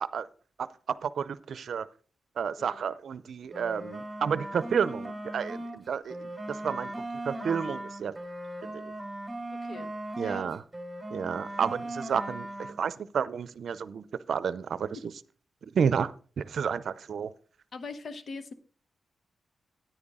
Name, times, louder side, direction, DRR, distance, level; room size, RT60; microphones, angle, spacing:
voice 1, 1.0-1.9 2.4-8.2 8.7-8.8 10.2-10.6 11.1-14.9 15.7-17.3, right 7 dB, 75° right, 0.5 m, -31 dB
sound 1, 3.5-5.8 6.1-10.5 10.7-12.8, right 1 dB, 5° right, 2.9 m, -38 dB
voice 2, 9.6-9.9 10.2-10.5 14.9-15.0 17.7-18.5, left 4 dB, 65° left, 0.9 m, -41 dB
9.8 x 9.3 x 3.6 m
cardioid pair, 65°, 0 cm